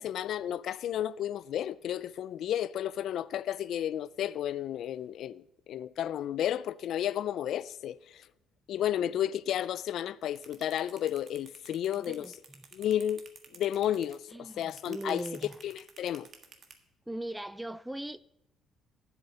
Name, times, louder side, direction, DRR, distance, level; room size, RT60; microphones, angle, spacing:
voice 1, 0.0-8.3 8.7-12.3 12.7-13.2 13.5-15.2 15.6-16.3, left 11 dB, 70° left, 0.3 m, -32 dB
sound 1, 10.4-16.7, right 5 dB, 45° right, 1.6 m, -51 dB
voice 2, 11.9-12.7 14.3-15.6 17.1-18.2, right 1 dB, 5° right, 0.4 m, -39 dB
8.0 x 7.5 x 8.2 m
cardioid pair, 90°, 0 cm